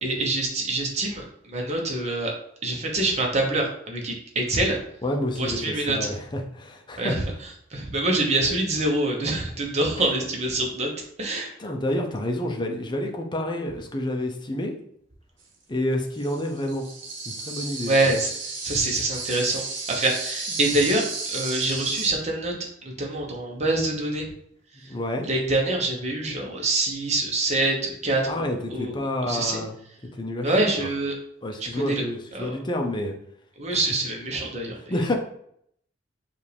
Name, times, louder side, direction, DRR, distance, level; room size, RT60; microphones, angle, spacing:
voice 1, 0.0-2.3 2.6-4.8 5.4-6.1 7.0-7.2 7.7-10.9 11.2-11.5 17.9-18.3 18.6-19.6 19.9-22.5 22.8-24.2 25.2-29.6 30.4-31.2 31.6-32.0 32.3-32.5 33.6-34.9, right 2 dB, 35° right, 0 dB, 1.0 m, -25 dB
voice 2, 5.0-7.2 10.0-10.1 11.6-14.7 15.7-16.9 17.3-18.1 24.8-25.3 28.3-29.7 30.2-30.9 31.4-33.1 34.9-35.1, left 1 dB, 25° left, 3 dB, 0.6 m, -29 dB
sound 1, 16.2-22.1, right 3 dB, 80° right, 1.1 m, -33 dB
5.4 x 2.5 x 3.4 m, 0.69 s
head